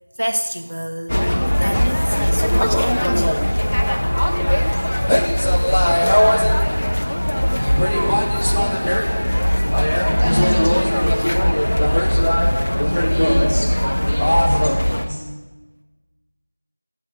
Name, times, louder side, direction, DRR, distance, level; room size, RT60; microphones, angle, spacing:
voice 1, 0.2-1.2 1.6-3.5 11.2-11.4 13.2-13.6, equal, 60° right, 6 dB, 0.5 m, -27 dB
sound 1, 1.1-15.1, equal, 25° left, 0.4 m, -18 dB
voice 2, 7.6-8.3 8.5-8.8 10.0-12.0 13.1-15.3, equal, 5° right, -11 dB, 1.7 m, -29 dB
8.3 x 6.3 x 5.0 m, 1.2 s
figure-of-eight pair, 180°, 0 cm